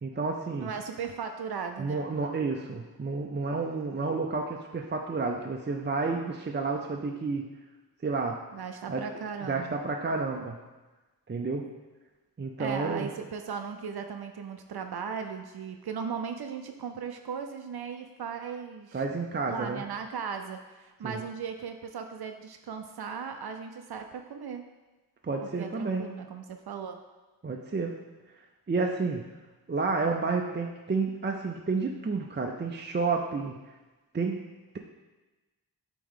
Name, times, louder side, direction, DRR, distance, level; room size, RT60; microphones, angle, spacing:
voice 1, 0.0-0.7 1.8-7.5 8.0-8.4 8.9-9.0 9.4-10.6 11.3-11.7 12.4-13.1 18.9-19.8 21.0-21.2 25.2-26.1 27.4-27.9 28.7-29.3 29.7-33.6 34.1-34.5, right 4 dB, 30° right, 2 dB, 0.5 m, -30 dB
voice 2, 0.6-2.1 8.5-9.8 12.6-19.0 19.5-24.6 25.4-27.0, right 6 dB, 75° right, 6 dB, 0.5 m, -37 dB
8.5 x 3.0 x 3.7 m, 1.2 s
cardioid pair, 45°, 39 cm